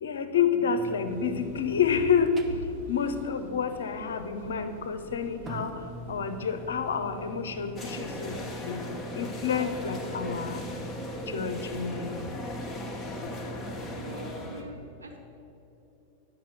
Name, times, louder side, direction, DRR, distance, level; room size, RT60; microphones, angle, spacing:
voice 1, 0.0-2.3 2.9-5.7 6.1-8.3 8.6-8.8 9.1-10.6 11.3-12.2, left 7 dB, 65° left, 9 dB, 0.7 m, -29 dB
sound 1, 0.8-14.4, right 1 dB, 15° right, 0.8 m, -45 dB
sound 2, 1.1-8.5, right 1 dB, 60° right, 2.1 m, -48 dB
sound 3, 7.8-14.6, left 1 dB, 15° left, 1.3 m, -37 dB
voice 2, 14.0-15.2, right 1 dB, 80° right, 1 dB, 1.4 m, -45 dB
10.5 x 6.0 x 6.5 m, 3.0 s
figure-of-eight pair, 90°, 0 cm